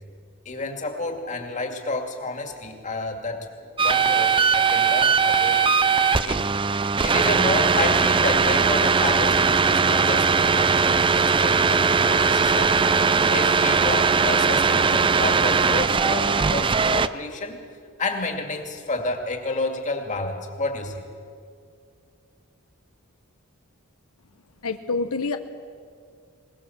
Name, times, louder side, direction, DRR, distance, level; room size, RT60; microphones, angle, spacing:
voice 1, 0.5-3.5 3.8-5.6 6.2-6.5 7.0-12.8 13.3-17.6 18.0-21.0, left 2 dB, 35° left, 4 dB, 2.3 m, -30 dB
sound 1, 3.8-17.1, right 5 dB, 25° right, 0.5 m, -20 dB
voice 2, 24.6-25.4, left 3 dB, 85° left, 7 dB, 0.9 m, -26 dB
21.5 x 19.5 x 7.3 m, 2.2 s
head